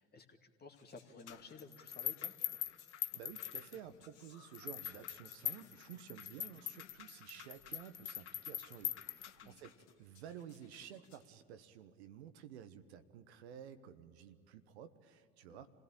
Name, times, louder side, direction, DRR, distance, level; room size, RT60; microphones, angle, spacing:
voice 1, 0.0-2.3 9.4-9.6 15.4-15.6, left 4 dB, 30° left, 5 dB, 2.3 m, -55 dB
sound 1, 0.7-11.2, left 6 dB, 65° left, 2.6 m, -67 dB
sound 2, 1.3-4.1 4.5-9.7, left 10 dB, 90° left, 0.6 m, -43 dB
voice 2, 3.1-15.7, right 9 dB, 70° right, 10 dB, 1.2 m, -53 dB
26.5 x 17.5 x 8.8 m, 2.4 s
hypercardioid pair, 70°, 34 cm